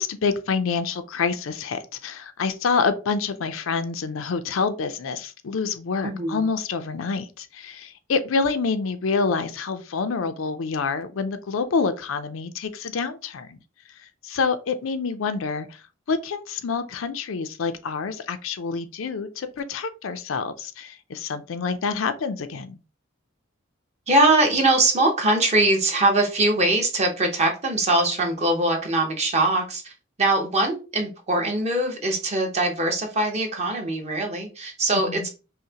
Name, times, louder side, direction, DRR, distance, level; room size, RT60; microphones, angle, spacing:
voice 1, 0.0-13.6 14.2-15.8 16.1-22.8 34.9-35.3, left 5 dB, 70° left, 0.5 m, -27 dB
voice 2, 6.0-6.4 24.1-29.9 30.2-35.3, right 2 dB, 35° right, 0.9 m, -22 dB
5.5 x 2.1 x 2.8 m
head